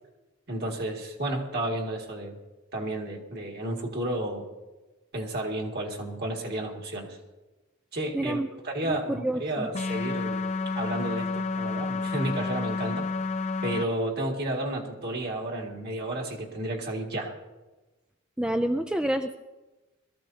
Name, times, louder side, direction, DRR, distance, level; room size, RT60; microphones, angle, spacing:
voice 1, 0.5-2.4 2.7-4.4 5.1-7.1 7.9-8.4 8.6-10.4 10.8-13.1 13.6-17.3, right 1 dB, 50° right, 1 dB, 2.2 m, -32 dB
voice 2, 8.1-8.5 8.8-9.7 18.4-19.3, right 1 dB, 5° right, 6 dB, 0.4 m, -28 dB
sound 1, 9.7-13.8, left 4 dB, 30° left, 0.7 m, -30 dB
22.0 x 14.0 x 2.8 m, 1.1 s
head